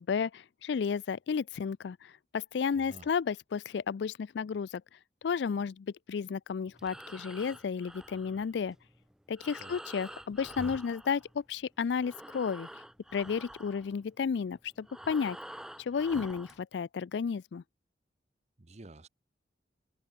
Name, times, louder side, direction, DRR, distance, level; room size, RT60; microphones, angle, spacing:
voice 1, 0.0-4.8 5.2-8.8 9.3-12.7 13.1-15.4 15.8-17.6, left 6 dB, 70° left, 0.4 m, -32 dB
voice 2, 2.8-3.1 9.6-9.8 18.6-19.1, right 2 dB, 40° right, 0.9 m, -50 dB
Breathing, 6.7-11.7 11.9-16.6, right 1 dB, 5° right, 0.4 m, -48 dB
head